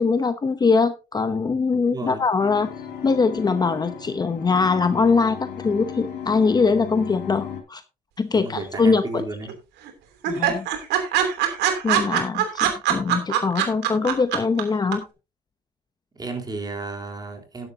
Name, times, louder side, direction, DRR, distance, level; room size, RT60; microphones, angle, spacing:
voice 1, 0.0-2.7 3.0-7.8 8.2-9.2 10.3-10.7 11.8-15.0, left 4 dB, 25° left, 0.8 m, -22 dB
voice 2, 1.7-2.2 8.3-9.6 16.2-17.7, right 3 dB, 25° right, 3.5 m, -33 dB
sound 1, 2.4-7.6, left 7 dB, 85° left, 3.6 m, -35 dB
sound 2, 8.6-9.2 9.5-9.6 9.9-10.0 10.2-14.6 14.9-15.0, right 11 dB, 85° right, 3.1 m, -22 dB
13.0 x 11.0 x 2.8 m
cardioid pair, 110°, 17 cm